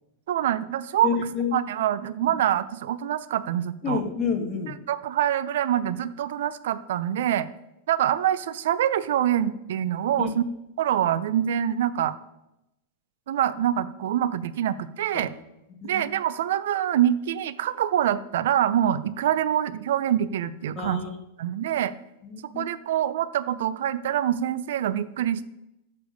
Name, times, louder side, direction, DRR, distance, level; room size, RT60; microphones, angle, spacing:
voice 1, 0.3-1.2 1.5-4.0 4.9-7.5 7.9-10.4 10.8-12.2 13.3-15.3 15.8-21.0 21.4-21.9 22.6-25.5, right 11 dB, 75° right, 16 dB, 0.5 m, -25 dB
voice 2, 1.0-1.6 2.2-2.3 3.8-4.7 10.2-10.3 15.1-15.3 15.8-16.0 20.8-21.2 22.2-22.7, left 5 dB, 30° left, 5 dB, 1.4 m, -29 dB
9.5 x 6.9 x 5.3 m, 0.89 s
supercardioid pair, 145°, 0 cm